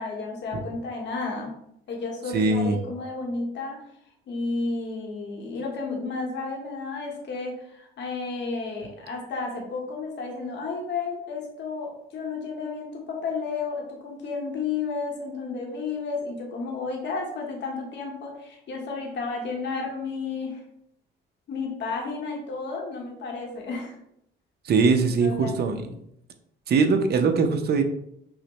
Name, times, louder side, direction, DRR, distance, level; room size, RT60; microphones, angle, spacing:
voice 1, 0.0-1.5 1.9-3.8 4.3-20.6 21.5-24.0 25.2-25.8, left 4 dB, 65° left, 0 dB, 1.0 m, -32 dB
voice 2, 2.3-2.8 24.7-25.8 26.7-27.8, right 4 dB, 55° right, 6 dB, 0.6 m, -21 dB
5.7 x 2.1 x 3.0 m, 0.75 s
cardioid pair, 90°, 20 cm